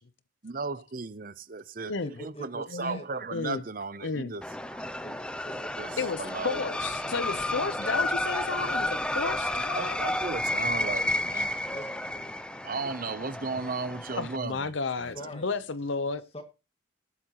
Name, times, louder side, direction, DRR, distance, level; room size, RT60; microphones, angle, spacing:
voice 1, 0.4-1.9 2.2-4.4 4.7-4.9 5.8-6.6 7.8-7.9 9.8-11.5 12.6-14.7 15.0-15.3, right 4 dB, 45° right, 0.7 m, -35 dB
voice 2, 2.0-3.3 5.0-6.7 10.7-12.4 15.1-15.6 16.3-16.4, left 1 dB, 30° left, 2.0 m, -45 dB
voice 3, 2.7-3.0 3.3-3.6 4.0-4.3 6.0-10.0 14.1-16.2, left 4 dB, 70° left, 0.8 m, -32 dB
sound 1, 4.4-14.4, left 1 dB, 5° left, 0.6 m, -31 dB
19.0 x 8.4 x 3.0 m
head